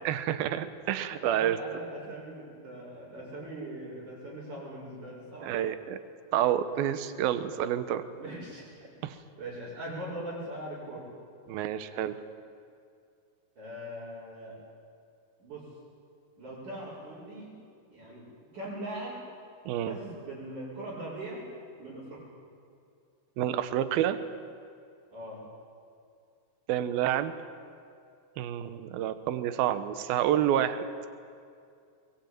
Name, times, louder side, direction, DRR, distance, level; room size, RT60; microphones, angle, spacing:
voice 1, 0.0-1.6 5.4-6.0 6.3-8.0 9.0-9.2 11.5-12.2 19.7-20.0 23.4-24.2 26.7-27.3 28.4-30.8, right 11 dB, 75° right, 12 dB, 2.8 m, -28 dB
voice 2, 1.2-5.5 8.1-8.9 9.4-11.0 13.6-14.6 15.4-15.7 16.4-17.5 17.9-18.3 18.5-19.2 19.9-21.4 21.8-22.2 25.1-25.4, right 1 dB, 55° right, -11 dB, 7.3 m, -40 dB
22.0 x 21.5 x 9.1 m, 2.4 s
omnidirectional pair, 4.5 m